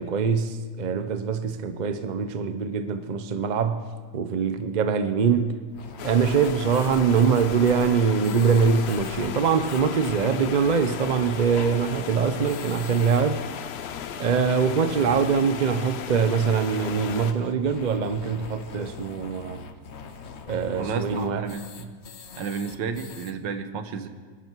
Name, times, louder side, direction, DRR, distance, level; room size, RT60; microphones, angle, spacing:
voice 1, 0.0-3.8 4.1-5.6 6.0-13.4 14.2-19.7 20.5-21.5, right 6 dB, 45° right, 0.6 m, -23 dB
sound 1, 5.7-23.3, left 5 dB, 50° left, 0.9 m, -42 dB
sound 2, 6.0-17.3, left 8 dB, 85° left, 0.5 m, -36 dB
voice 2, 20.8-21.9 22.4-24.1, right 6 dB, 85° right, 1.7 m, -32 dB
25.5 x 11.5 x 4.7 m
omnidirectional pair, 1.9 m